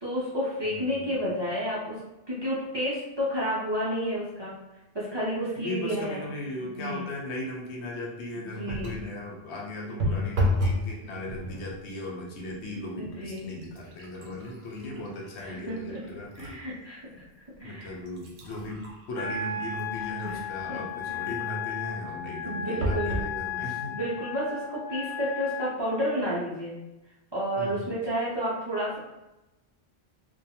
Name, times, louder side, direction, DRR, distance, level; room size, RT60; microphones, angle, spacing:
voice 1, 0.0-2.0 2.3-4.6 4.9-6.2 6.8-7.0 8.4-9.0 10.1-10.3 13.0-13.5 14.3-14.4 15.0-15.1 15.4-15.8 16.4-17.2 17.6-18.0 20.2-20.4 20.7-20.8 21.1-21.2 22.4-23.2 23.9-26.8 27.3-29.0, equal, 35° right, -8 dB, 0.5 m, -31 dB
voice 2, 0.6-1.1 5.6-16.6 17.6-18.8 19.1-24.0 27.6-27.9, left 1 dB, 85° left, -2 dB, 1.0 m, -37 dB
sound 1, 8.6-9.1 10.0-10.9 11.2-11.7 12.5-12.6 13.0-16.6 17.1-17.2 17.9-20.6 22.8-23.3 24.0-24.1 24.3-24.4, equal, 75° right, 0.9 m, -32 dB
Wind instrument woodwind instrument, 19.1-25.7, left 6 dB, 60° left, 0.7 m, -35 dB
2.5 x 2.2 x 2.7 m, 0.98 s
omnidirectional pair, 1.1 m